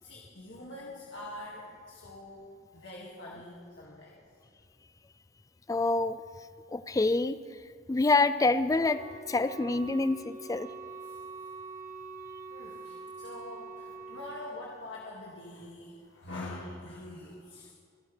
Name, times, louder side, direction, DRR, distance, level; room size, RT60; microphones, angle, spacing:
voice 1, 0.0-2.5 2.7-4.2 6.7-6.8 11.0-11.2 12.5-17.7, left 1 dB, 65° left, -4 dB, 2.0 m, -44 dB
voice 2, 5.7-6.2 6.7-7.4 7.9-9.0 9.3-10.7, left 3 dB, 20° left, 13 dB, 0.3 m, -26 dB
Wind instrument woodwind instrument, 8.8-14.6, right 4 dB, 40° right, 1.3 m, -45 dB
28.0 x 11.5 x 3.3 m, 2.2 s
head